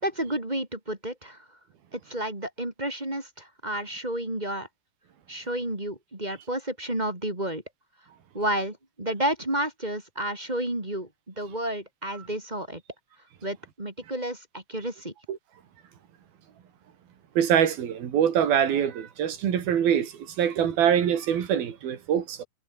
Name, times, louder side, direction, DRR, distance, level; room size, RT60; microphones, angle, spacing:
voice 1, 0.0-1.5 1.9-4.7 5.3-7.6 8.3-12.8 13.4-15.1, right 1 dB, 10° right, 3.2 m, -31 dB
voice 2, 17.4-22.4, right 9 dB, 85° right, 4.4 m, -24 dB
omnidirectional pair, 4.1 m